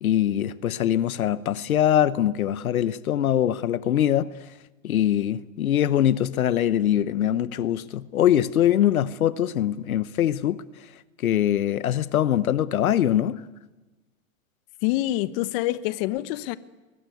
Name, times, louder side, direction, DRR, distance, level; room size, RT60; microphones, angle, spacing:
voice 1, 0.0-4.3 4.8-10.6 11.2-13.5, left 11 dB, 80° left, 1.1 m, -23 dB
voice 2, 14.8-16.6, left 16 dB, 45° left, 1.1 m, -26 dB
22.5 x 22.0 x 9.4 m
hypercardioid pair, 130°, 42 cm